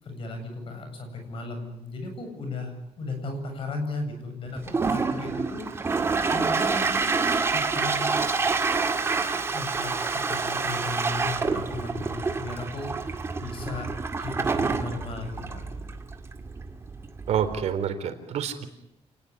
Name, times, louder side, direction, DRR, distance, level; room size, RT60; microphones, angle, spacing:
voice 1, 0.0-8.2 9.5-13.9 14.2-15.6, left 2 dB, 50° left, 6 dB, 7.9 m, -36 dB
Toilet flush, 4.5-17.7, right 4 dB, 20° right, 2.0 m, -28 dB
voice 2, 17.3-18.7, right 8 dB, 75° right, 8 dB, 3.9 m, -28 dB
29.0 x 20.0 x 9.9 m, 0.82 s
cardioid pair, 170°, 11 cm